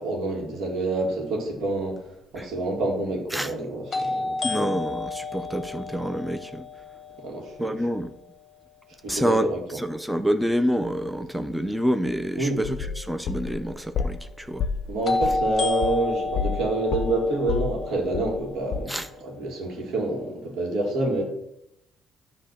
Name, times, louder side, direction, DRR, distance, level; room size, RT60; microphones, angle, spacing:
voice 1, 0.0-2.0 2.3-4.4 7.2-7.8 9.0-9.6 12.3-12.6 14.9-18.9 19.2-21.2, right 2 dB, 75° right, 2.1 m, -27 dB
sound 1, 2.0-2.1 3.9-7.8 15.1-19.1, left 3 dB, 35° left, 1.2 m, -30 dB
voice 2, 4.4-6.6 7.6-8.1 9.1-14.7 18.9-19.1, equal, 5° right, 0.5 m, -27 dB
sound 2, 12.6-14.3 14.6-16.6 16.9-18.5 18.7-18.8, left 6 dB, 55° left, 0.6 m, -29 dB
9.8 x 3.3 x 6.5 m
cardioid pair, 95°, 0 cm